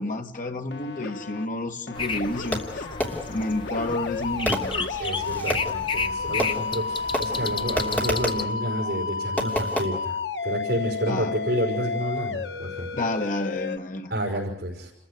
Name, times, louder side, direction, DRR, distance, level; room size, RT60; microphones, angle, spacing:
voice 1, 0.0-2.9 3.3-5.1 7.3-7.5 11.0-11.3 12.9-14.1, left 1 dB, 50° left, 1.6 m, -30 dB
sound 1, 0.7-1.5 1.9-13.8, left 4 dB, 80° left, 1.2 m, -32 dB
sound 2, 1.9-8.4, left 4 dB, 30° left, 1.0 m, -32 dB
Fireworks, 2.5-3.5 4.5-5.8 6.4-6.9 7.1-8.5 9.4-9.9, equal, 10° left, 3.1 m, -30 dB
voice 2, 5.0-10.1 10.4-12.9 14.1-14.9, equal, 60° right, 5.1 m, -29 dB
30.0 x 14.5 x 9.5 m
head